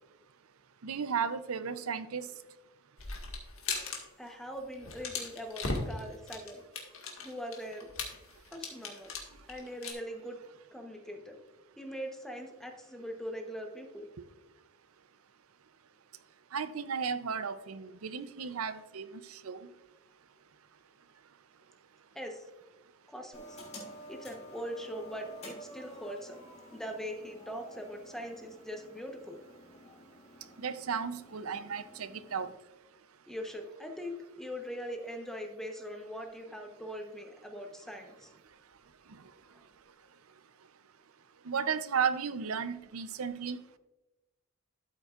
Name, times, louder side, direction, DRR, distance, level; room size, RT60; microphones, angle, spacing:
voice 1, 0.8-2.3 16.5-19.7 30.6-32.5 41.4-43.6, right 6 dB, 70° right, 12 dB, 0.6 m, -34 dB
sound 1, 3.0-4.0 4.3-4.4 4.7-9.9, left 3 dB, 65° left, 1.8 m, -38 dB
voice 2, 4.2-6.7 7.2-7.9 8.5-9.1 9.5-10.4 10.7-11.4 11.8-14.1 22.1-22.5 23.1-23.6 24.1-26.4 26.7-29.4 33.3-38.3 39.5-39.6, equal, ahead, 3 dB, 0.9 m, -41 dB
sound 2, 23.3-32.5, equal, 30° left, 3.4 m, -51 dB
12.5 x 8.0 x 2.5 m, 1.1 s
head